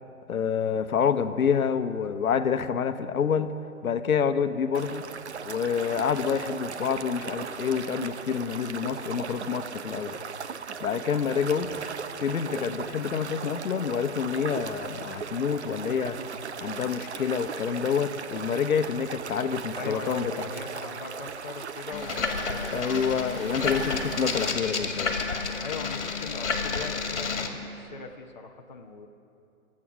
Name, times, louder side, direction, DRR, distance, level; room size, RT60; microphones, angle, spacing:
voice 1, 0.3-3.5 3.8-5.1 5.4-10.2 10.8-11.7 12.2-16.2 16.6-20.5 22.7-25.2, left 7 dB, 70° left, 10 dB, 1.0 m, -27 dB
sound 1, 4.7-24.5, right 6 dB, 50° right, 0.6 m, -38 dB
voice 2, 19.8-23.1 25.2-29.1, left 4 dB, 30° left, 2 dB, 0.8 m, -39 dB
sound 2, 21.9-27.5, left 4 dB, 55° left, 2.0 m, -30 dB
24.0 x 8.7 x 6.2 m, 2.7 s
hypercardioid pair, 170°, 43 cm